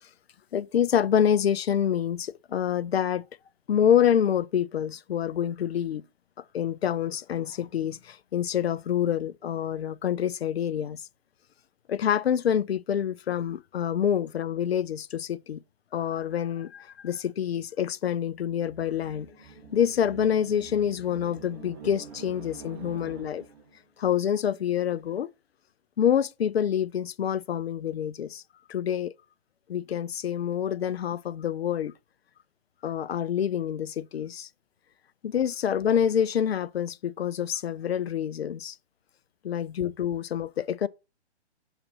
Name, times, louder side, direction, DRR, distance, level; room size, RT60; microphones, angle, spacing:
voice 1, 0.5-3.2 3.7-6.0 6.5-11.0 11.9-15.6 15.9-19.3 19.7-23.4 24.0-25.3 26.0-28.4 28.7-29.1 29.7-31.9 32.8-34.5 35.2-38.8 39.4-40.9, left 9 dB, 65° left, 0.5 m, -27 dB
sound 1, 18.3-23.8, right 7 dB, 30° right, 1.0 m, -47 dB
5.8 x 4.0 x 5.3 m
figure-of-eight pair, 130°, 34 cm